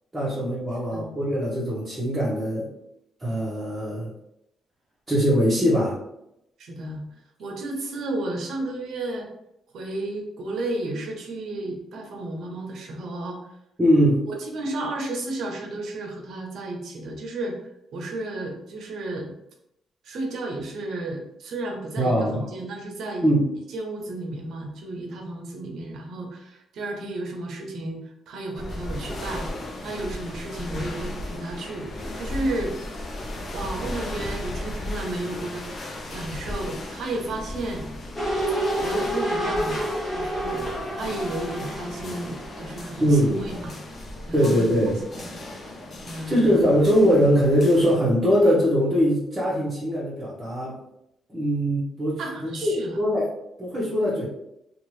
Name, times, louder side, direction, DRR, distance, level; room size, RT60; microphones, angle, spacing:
voice 1, 0.1-2.7 3.2-4.1 5.1-6.0 13.8-14.2 22.0-22.4 23.2-23.4 43.0-43.4 44.3-45.0 46.3-50.7 51.3-53.3 53.6-54.2, equal, 15° right, -9 dB, 1.0 m, -21 dB
voice 2, 6.6-7.0 7.4-9.3 9.7-13.6 14.3-19.3 20.0-23.3 23.7-32.8 33.5-35.7 36.1-37.8 38.8-43.8 44.3-45.3 46.1-46.5 52.2-53.0, right 2 dB, 70° right, 2 dB, 0.7 m, -33 dB
sound 1, 28.5-48.0, left 1 dB, 45° left, 0.6 m, -36 dB
sound 2, 38.2-43.1 43.4-43.5, right 1 dB, 20° left, 1.1 m, -28 dB
2.7 x 2.4 x 3.1 m, 0.81 s
cardioid pair, 90°, 0 cm